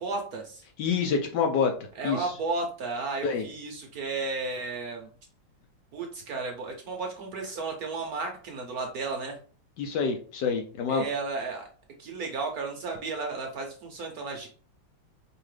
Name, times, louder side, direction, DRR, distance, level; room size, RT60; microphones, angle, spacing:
voice 1, 0.0-0.6 1.9-5.1 5.9-9.4 10.9-11.7 12.0-14.5, right 3 dB, 70° right, 2 dB, 0.8 m, -33 dB
voice 2, 0.8-1.7 2.0-2.3 3.2-3.4 9.8-11.0, left 6 dB, 75° left, 4 dB, 1.0 m, -27 dB
4.8 x 2.9 x 3.2 m, 0.42 s
omnidirectional pair, 2.3 m